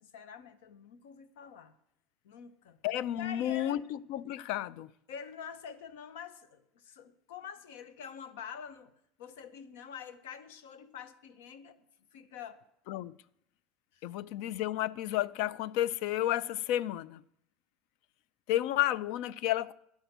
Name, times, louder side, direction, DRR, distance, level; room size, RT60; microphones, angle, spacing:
voice 1, 0.0-1.7 2.2-2.8 3.2-3.8 5.1-8.9 9.2-11.8 12.1-12.6 13.9-14.1, left 7 dB, 90° left, 0.8 m, -46 dB
voice 2, 2.8-4.9 12.9-13.1 14.0-17.2 18.5-19.7, left 13 dB, 70° left, 0.4 m, -32 dB
11.5 x 6.0 x 7.9 m
supercardioid pair, 125°, 0 cm